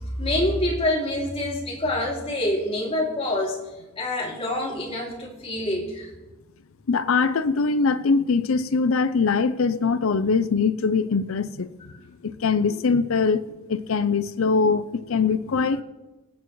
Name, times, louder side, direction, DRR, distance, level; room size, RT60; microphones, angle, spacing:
voice 1, 0.2-3.6 4.0-6.1 11.9-12.0, left 1 dB, 30° left, 2.8 m, -26 dB
voice 2, 6.9-11.7 12.2-15.8, left 4 dB, 85° left, 0.5 m, -22 dB
26.0 x 9.2 x 3.2 m
head